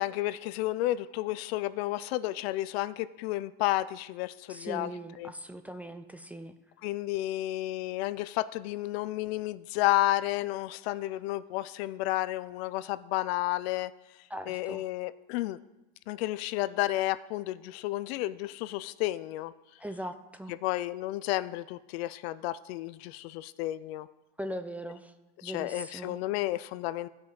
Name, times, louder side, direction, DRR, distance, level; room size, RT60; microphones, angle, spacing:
voice 1, 0.0-4.9 5.2-5.3 6.8-13.9 14.5-15.6 16.1-19.5 20.5-24.1 25.4-27.1, left 16 dB, 70° left, 15 dB, 0.5 m, -31 dB
voice 2, 4.5-6.5 14.3-14.9 19.8-20.5 24.4-25.1 25.4-26.2, equal, 5° right, 7 dB, 0.4 m, -40 dB
15.5 x 5.3 x 3.9 m, 1.0 s
supercardioid pair, 120°, 32 cm